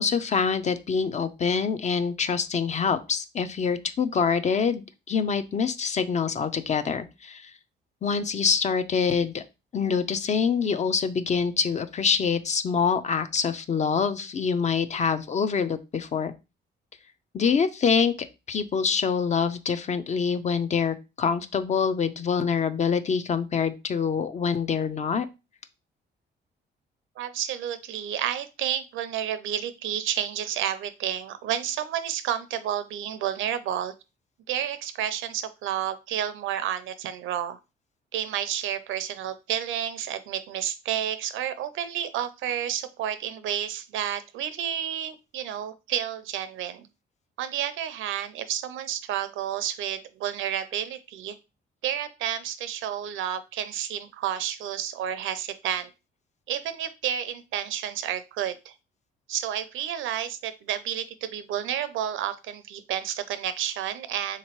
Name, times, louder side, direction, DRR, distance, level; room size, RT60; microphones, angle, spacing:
voice 1, 0.0-7.5 8.0-9.4 9.7-16.3 17.3-18.1 18.5-25.3, left 6 dB, 35° left, 11 dB, 0.4 m, -25 dB
voice 2, 27.2-33.9 34.5-37.6 38.1-46.9 47.4-51.4 51.8-55.9 56.5-58.7 59.3-64.4, right 10 dB, 85° right, 13 dB, 0.5 m, -30 dB
3.6 x 2.9 x 2.9 m, 0.27 s
cardioid pair, 90°, 20 cm